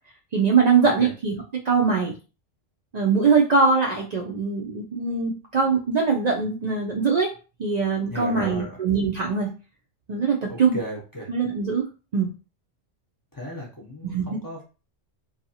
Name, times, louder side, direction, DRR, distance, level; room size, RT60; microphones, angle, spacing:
voice 1, 0.3-1.3 1.6-2.1 2.9-7.3 7.6-9.5 10.1-10.8 11.3-11.9 12.1-12.3 14.0-14.4, right 5 dB, 90° right, -1 dB, 0.3 m, -22 dB
voice 2, 8.1-8.8 10.5-11.3 13.3-14.6, equal, 25° left, -2 dB, 0.5 m, -35 dB
2.7 x 2.3 x 2.7 m, 0.33 s
omnidirectional pair, 1.3 m